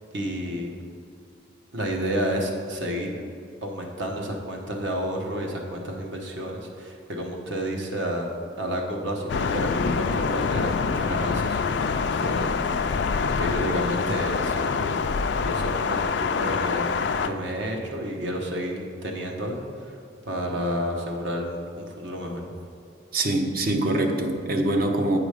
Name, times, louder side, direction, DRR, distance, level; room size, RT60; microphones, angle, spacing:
voice 1, 0.1-0.7 1.7-3.3 3.6-13.0 13.4-14.9 15.4-16.9 17.2-20.0 20.3-22.4, equal, 65° right, 1 dB, 1.0 m, -30 dB
Thunder, 9.3-17.3, left 5 dB, 60° left, 0.3 m, -25 dB
voice 2, 23.1-25.2, right 1 dB, 45° right, 4 dB, 0.6 m, -24 dB
8.5 x 5.0 x 4.9 m, 2.5 s
head